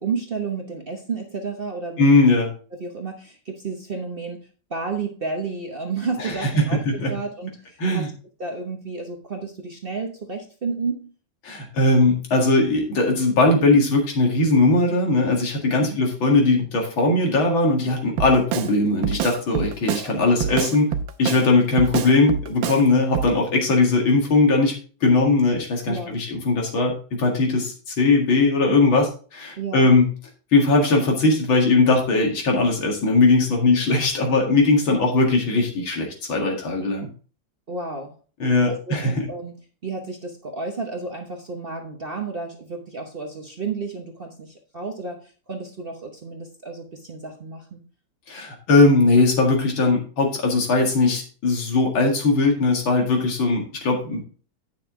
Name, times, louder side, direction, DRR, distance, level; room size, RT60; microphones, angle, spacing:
voice 1, 0.0-2.0 2.8-8.1 8.4-11.1 15.8-16.0 20.0-20.2 25.9-26.2 29.6-29.9 34.9-35.1 37.7-38.2 38.7-47.8, right 4 dB, 40° right, 3 dB, 0.9 m, -32 dB
voice 2, 2.0-2.5 6.2-7.1 7.8-8.1 11.4-20.9 21.2-24.7 25.0-30.1 30.5-37.1 38.4-39.3 48.3-54.3, left 3 dB, 90° left, 1 dB, 2.8 m, -19 dB
Drum kit, 18.2-18.7 19.0-20.1 20.4-21.5 21.8-22.8 23.1-23.3, right 8 dB, 90° right, 1.5 m, -26 dB
9.2 x 6.5 x 3.7 m, 0.38 s
omnidirectional pair, 2.1 m